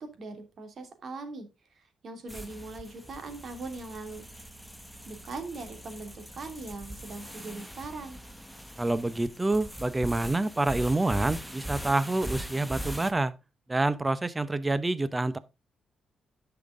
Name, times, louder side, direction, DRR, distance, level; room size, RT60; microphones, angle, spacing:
voice 1, 0.0-1.5 1.7-4.2 5.1-8.2, right 3 dB, 55° right, 2.8 m, -40 dB
sound 1, 2.3-13.1, right 1 dB, ahead, 1.2 m, -41 dB
voice 2, 8.8-13.3 13.7-15.4, right 2 dB, 20° right, 0.9 m, -27 dB
10.5 x 6.0 x 3.8 m
cardioid pair, 80°, 0 cm